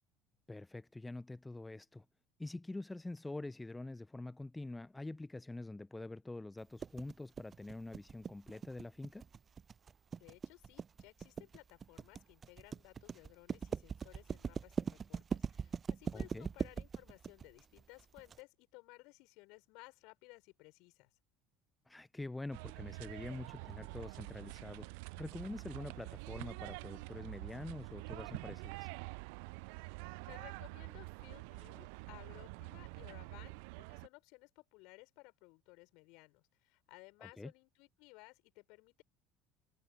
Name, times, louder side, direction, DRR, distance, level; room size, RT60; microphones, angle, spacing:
voice 1, 0.5-2.0 2.4-9.2 16.1-16.5 21.9-24.9 25.2-28.9 37.2-37.5, left 2 dB, 10° left, 0.7 m, -46 dB
sound 1, 6.8-18.4, right 6 dB, 30° right, 0.6 m, -41 dB
voice 2, 10.2-21.1 30.3-39.0, left 26 dB, 60° left, 6.5 m, -58 dB
sound 2, 22.5-34.1, right 32 dB, 60° right, 0.7 m, -47 dB
figure-of-eight pair, 65°, 0 cm